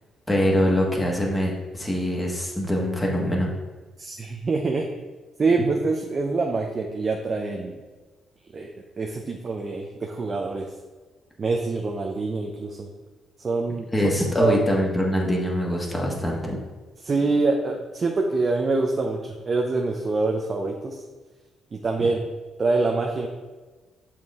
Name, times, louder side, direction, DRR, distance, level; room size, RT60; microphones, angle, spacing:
voice 1, 0.3-3.5 13.9-16.6, equal, 15° left, -2 dB, 1.5 m, -23 dB
voice 2, 4.0-4.9 5.4-7.8 8.5-8.7 9.0-10.7 11.4-12.9 13.4-13.9 14.4-14.6 17.0-21.0 21.7-22.2 22.6-23.3, right 3 dB, 45° right, 2 dB, 0.6 m, -25 dB
6.1 x 4.4 x 3.6 m, 1.3 s
supercardioid pair, 55°, 0 cm